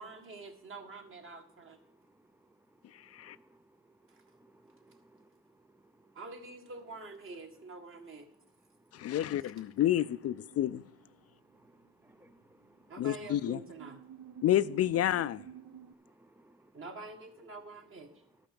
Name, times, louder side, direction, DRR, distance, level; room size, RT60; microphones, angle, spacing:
voice 1, 0.0-1.8 4.1-4.2 6.1-8.3 9.4-9.5 12.9-14.0 16.7-18.1, right 3 dB, 45° right, 1.7 m, -46 dB
voice 2, 3.2-3.6 4.3-5.3 6.0-6.1 9.0-9.1 11.5-12.9 16.0-16.7, right 1 dB, 5° right, 0.4 m, -63 dB
voice 3, 8.9-10.8 13.0-13.6 14.4-15.4, left 12 dB, 55° left, 0.4 m, -29 dB
sound 1, 9.8-11.6 11.8-15.9, right 8 dB, 65° right, 0.8 m, -53 dB
12.0 x 5.8 x 6.9 m
cardioid pair, 90°, 30 cm